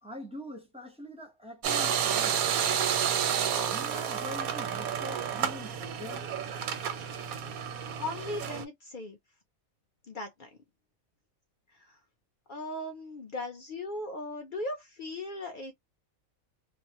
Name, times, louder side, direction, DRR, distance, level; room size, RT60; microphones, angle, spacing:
voice 1, 0.0-2.4 3.5-6.3, equal, 5° right, 0.5 m, -44 dB
sound 1, 1.6-8.6, right 8 dB, 85° right, 1.0 m, -30 dB
voice 2, 8.0-9.2 10.1-10.5 11.9-12.0 12.5-15.7, left 2 dB, 60° left, 0.5 m, -38 dB
2.5 x 2.1 x 2.8 m
omnidirectional pair, 1.5 m